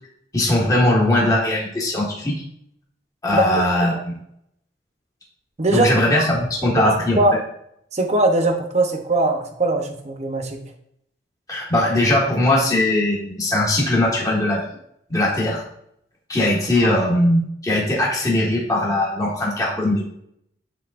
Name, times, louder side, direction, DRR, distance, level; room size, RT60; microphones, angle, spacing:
voice 1, 0.3-2.4 3.2-4.1 5.7-7.2 11.5-14.7 15.1-15.6 16.3-20.0, left 1 dB, 20° left, -4 dB, 1.6 m, -20 dB
voice 2, 5.6-5.9 6.8-7.3 7.9-10.6, right 2 dB, 40° right, 4 dB, 0.8 m, -20 dB
10.5 x 3.7 x 2.5 m, 0.75 s
head